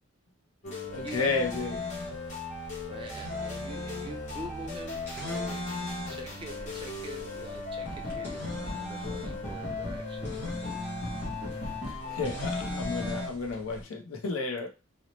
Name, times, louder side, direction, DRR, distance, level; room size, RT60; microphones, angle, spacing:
sound 1, 0.6-13.3, left 3 dB, 35° left, 0.7 m, -37 dB
voice 1, 0.7-1.8 11.9-14.7, left 4 dB, 75° left, 0.5 m, -32 dB
sound 2, 0.9-13.8, left 2 dB, 10° left, 0.9 m, -41 dB
voice 2, 2.9-10.6 12.0-12.3, right 2 dB, 25° right, 0.4 m, -45 dB
2.8 x 2.0 x 2.9 m
head